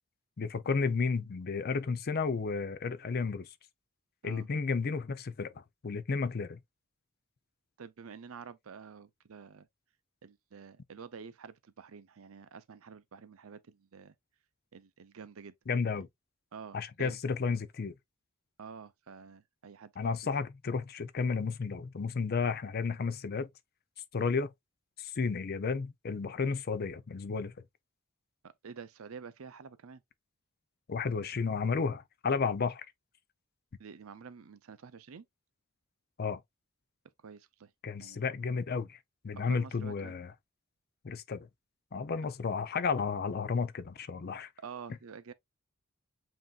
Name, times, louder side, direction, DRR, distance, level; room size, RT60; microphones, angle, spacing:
voice 1, 0.4-3.5 4.2-5.5 5.8-6.6 15.7-16.1 16.7-17.9 20.0-23.5 24.1-24.5 25.0-27.5 30.9-32.9 36.2-36.4 37.8-39.0 39.2-40.3 41.0-41.5 41.9-44.5, left 5 dB, 45° left, 0.5 m, -32 dB
voice 2, 7.8-9.7 10.2-14.1 14.7-15.5 15.9-16.0 16.5-17.2 18.6-20.4 28.4-30.0 33.8-35.3 37.2-37.7 38.0-38.2 39.3-40.1 44.6-45.3, right 6 dB, 75° right, 0.5 m, -48 dB
7.6 x 2.7 x 2.3 m
head